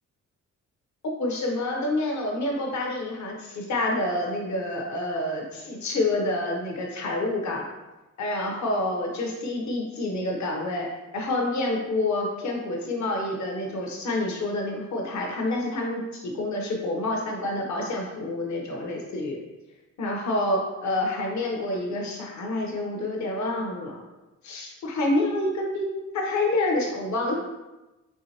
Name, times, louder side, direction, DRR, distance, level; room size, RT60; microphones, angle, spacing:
voice 1, 1.2-7.6 8.2-10.9 11.1-19.4 20.0-24.0 24.4-25.8 26.1-27.3, left 2 dB, 75° left, 0 dB, 0.9 m, -28 dB
4.6 x 3.1 x 2.8 m, 1.1 s
cardioid pair, 110°, 29 cm